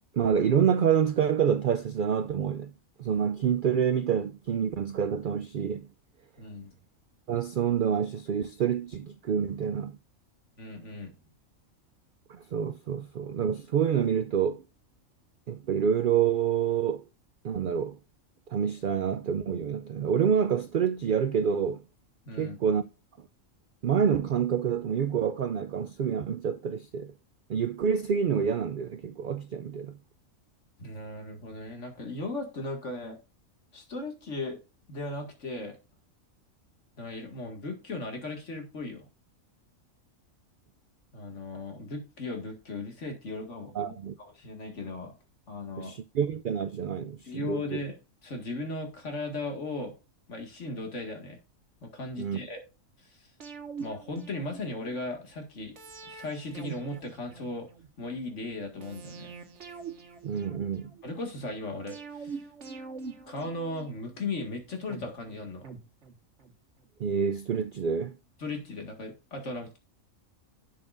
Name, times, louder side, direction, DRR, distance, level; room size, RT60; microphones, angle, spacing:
voice 1, 0.1-2.7 3.0-5.9 7.3-10.0 12.3-14.6 15.5-17.0 17.4-18.0 18.5-21.8 22.4-22.8 23.8-27.1 27.5-29.9 43.7-44.1 45.8-47.8 52.2-52.4 60.2-60.9 67.0-68.2, right 7 dB, 80° right, 0.4 m, -27 dB
voice 2, 6.4-6.7 10.6-11.1 22.3-22.6 30.8-33.2 33.7-34.6 34.9-35.8 37.0-39.1 41.1-45.1 45.5-46.0 47.3-48.0 48.2-49.9 50.3-51.4 51.8-52.6 53.0-53.3 53.8-55.8 56.0-57.7 58.0-59.4 61.0-62.5 63.3-65.6 68.4-69.8, left 2 dB, 60° left, 2.2 m, -37 dB
sound 1, 53.4-55.0 55.8-57.9 58.8-61.0 61.9-64.2 64.9-66.5 66.8-66.9, right 5 dB, 60° right, 1.7 m, -44 dB
11.0 x 7.7 x 2.5 m
omnidirectional pair, 1.4 m